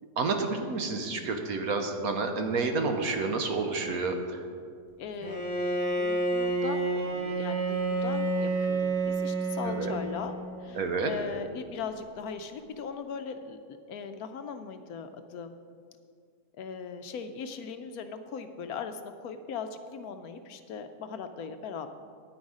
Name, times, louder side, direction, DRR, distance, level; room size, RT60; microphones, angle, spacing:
voice 1, 0.2-4.4 9.6-10.0 10.8-11.1, right 3 dB, 65° right, 5 dB, 1.3 m, -29 dB
voice 2, 5.0-5.4 6.0-13.6 13.9-15.5 16.6-21.9, left 6 dB, 70° left, 8 dB, 1.0 m, -39 dB
Bowed string instrument, 5.2-10.6, right 2 dB, 25° right, 0.9 m, -29 dB
9.6 x 9.3 x 4.9 m, 2.2 s
omnidirectional pair, 1.8 m